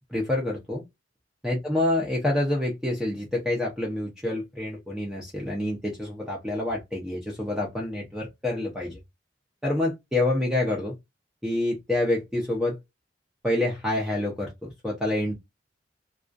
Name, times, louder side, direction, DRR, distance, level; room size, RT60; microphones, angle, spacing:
voice 1, 0.1-0.8 1.4-9.0 9.6-10.9 11.4-12.8 13.4-15.3, left 1 dB, 5° right, 0.6 m, -27 dB
2.4 x 2.3 x 2.5 m
head